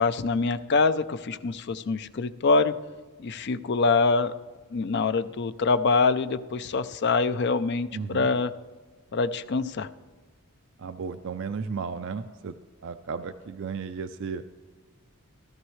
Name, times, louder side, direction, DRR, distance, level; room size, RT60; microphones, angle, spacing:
voice 1, 0.0-2.7 3.2-4.3 4.7-8.5 9.1-9.9, left 4 dB, 50° left, 12 dB, 0.4 m, -25 dB
voice 2, 7.9-8.3 10.8-12.5 12.8-14.4, right 5 dB, 55° right, 10 dB, 0.4 m, -34 dB
16.0 x 13.0 x 3.2 m, 1.4 s
head